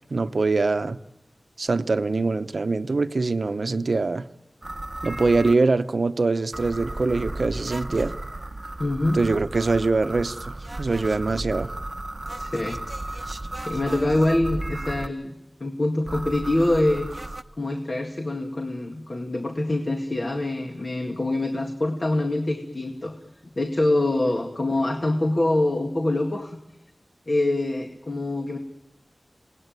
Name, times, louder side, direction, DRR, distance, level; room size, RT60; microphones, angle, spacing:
voice 1, 0.1-1.0 1.6-4.3 5.0-8.1 9.1-11.7, right 3 dB, 70° right, 0.8 m, -23 dB
sound 1, 4.6-5.5 6.5-15.1 16.1-17.4, right 2 dB, 35° right, 0.8 m, -34 dB
voice 2, 8.8-9.2 12.4-12.8 13.0-13.3 13.7-15.3 15.6-17.1 17.6-23.2 23.6-26.6 27.3-28.6, left 1 dB, 50° left, 2.0 m, -25 dB
28.0 x 19.0 x 9.3 m
wide cardioid pair, 65°, 0 cm